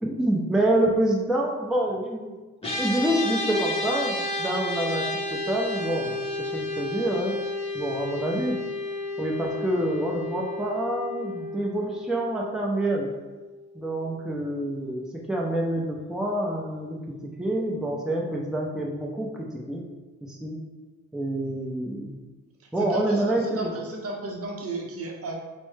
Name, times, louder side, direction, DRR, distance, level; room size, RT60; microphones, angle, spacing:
voice 1, 0.0-2.4 2.6-7.4 7.7-8.6 9.2-13.1 13.7-19.8 20.2-20.6 21.1-22.2 22.7-23.8, right 1 dB, ahead, -2 dB, 0.5 m, -27 dB
sound 1, 2.6-14.1, left 2 dB, 20° left, 1.0 m, -32 dB
voice 2, 22.6-25.3, right 2 dB, 50° right, 1 dB, 0.7 m, -34 dB
4.5 x 2.1 x 3.2 m, 1.2 s
cardioid pair, 90°, 30 cm